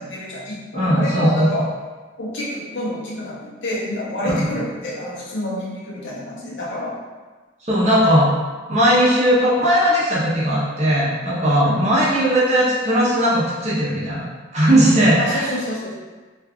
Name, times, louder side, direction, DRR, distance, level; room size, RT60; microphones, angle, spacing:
voice 1, 0.0-1.7 2.2-7.0 11.6-12.0 15.2-15.9, left 1 dB, 70° left, -5 dB, 0.7 m, -28 dB
voice 2, 0.7-1.5 4.2-4.4 7.6-8.3 8.7-14.2 14.5-15.4, equal, 35° right, -7 dB, 0.7 m, -18 dB
2.5 x 2.3 x 3.4 m, 1.3 s
head